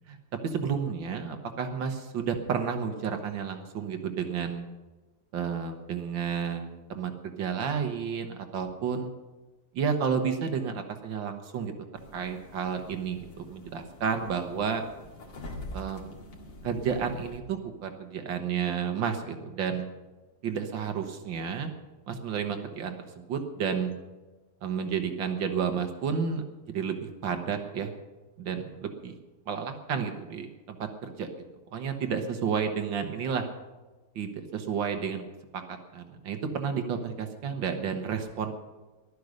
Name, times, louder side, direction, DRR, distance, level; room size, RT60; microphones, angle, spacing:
voice 1, 0.4-4.7 5.3-9.1 9.7-11.7 12.1-14.8 15.7-16.2 16.6-19.9 20.4-21.7 22.1-23.9 24.6-27.9 28.4-29.2 29.5-31.3 31.7-33.4 34.2-35.2 35.7-38.5, right 6 dB, 85° right, 6 dB, 2.0 m, -31 dB
sound 1, 12.0-17.4, left 1 dB, 85° left, 2.7 m, -45 dB
15.0 x 12.0 x 6.5 m, 1.2 s
omnidirectional pair, 2.0 m